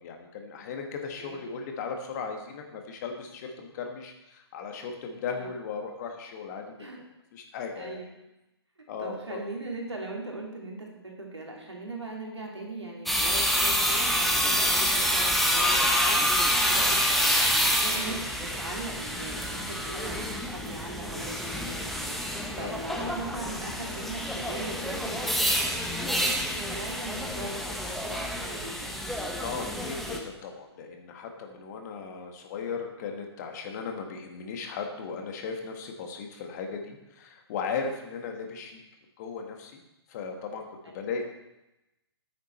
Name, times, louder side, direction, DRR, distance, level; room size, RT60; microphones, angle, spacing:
voice 1, 0.0-6.6 7.3-8.0 8.9-9.4 14.8-14.9 16.7-16.9 22.6-22.8 29.4-38.8 39.2-39.8 40.1-40.7 40.9-41.2, left 5 dB, 40° left, 4 dB, 1.5 m, -37 dB
voice 2, 9.0-22.2 22.6-29.0, right 2 dB, 90° right, -1 dB, 2.5 m, -40 dB
sound 1, 13.1-30.2, equal, ahead, 0.9 m, -27 dB
9.4 x 8.4 x 4.3 m, 0.94 s
figure-of-eight pair, 125°, 14 cm